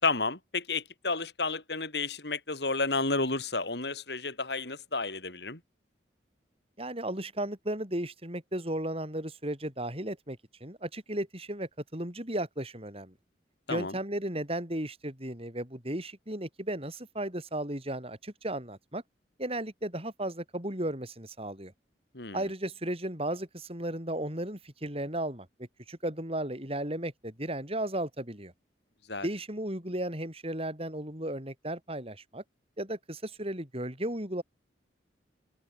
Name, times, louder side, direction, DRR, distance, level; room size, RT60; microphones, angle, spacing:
voice 1, 0.0-5.6 13.7-14.0 22.1-22.5 29.1-29.3, left 3 dB, 70° left, 5.2 m, -31 dB
voice 2, 6.8-13.1 13.7-19.0 19.4-21.7 22.3-25.5 25.9-28.5 29.2-32.4 32.8-34.4, right 1 dB, 35° right, 7.3 m, -35 dB
open air
head